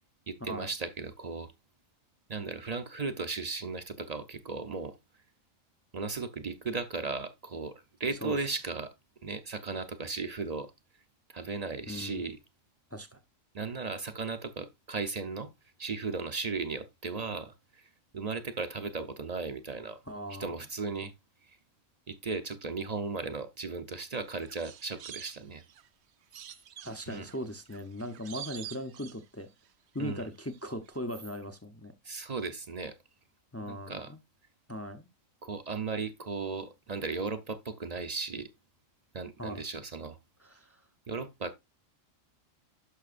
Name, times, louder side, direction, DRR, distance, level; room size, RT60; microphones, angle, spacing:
voice 1, 0.3-1.5 2.3-5.0 5.9-8.9 9.2-10.7 11.3-12.4 13.5-15.5 15.8-20.0 20.4-21.1 21.5-21.6 22.1-25.6 27.1-27.3 30.0-30.3 32.0-33.0 33.6-34.1 35.4-38.5 39.1-40.2 41.1-41.5, right 4 dB, 40° right, 0.6 m, -36 dB
voice 2, 11.9-12.2 12.9-13.2 20.1-20.5 26.8-29.5 29.9-31.9 33.5-34.2 34.7-35.1 39.4-39.6 40.4-40.8, equal, 20° left, 0.4 m, -39 dB
sound 1, 24.1-25.9 26.3-29.7 29.9-30.6 30.9-31.0, right 10 dB, 65° right, 0.9 m, -47 dB
11.5 x 5.8 x 2.5 m
omnidirectional pair, 1.3 m